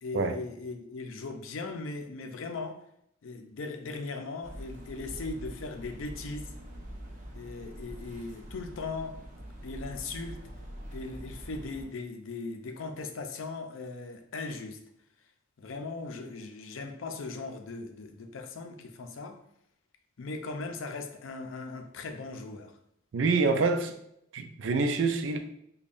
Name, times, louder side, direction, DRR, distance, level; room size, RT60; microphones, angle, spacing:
voice 1, 0.0-2.8 3.2-6.5 7.3-9.2 9.6-10.4 10.9-14.8 15.6-19.4 20.2-22.7, left 3 dB, 75° left, 0.5 m, -39 dB
sound 1, 4.4-11.8, equal, 40° right, 0.9 m, -44 dB
voice 2, 23.1-23.9 24.3-25.4, right 4 dB, 65° right, 0.4 m, -26 dB
5.2 x 2.2 x 2.5 m
head